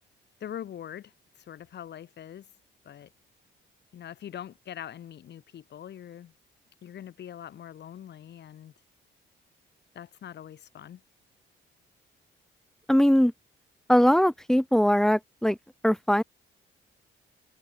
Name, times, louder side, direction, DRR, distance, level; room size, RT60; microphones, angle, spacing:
voice 1, 0.4-2.5 2.8-3.1 3.9-6.3 6.8-8.7 9.9-11.0, left 10 dB, 60° left, 1.4 m, -43 dB
voice 2, 12.9-13.3 13.9-15.6 15.8-16.2, equal, ahead, 0.5 m, -21 dB
cardioid pair, 90°, 20 cm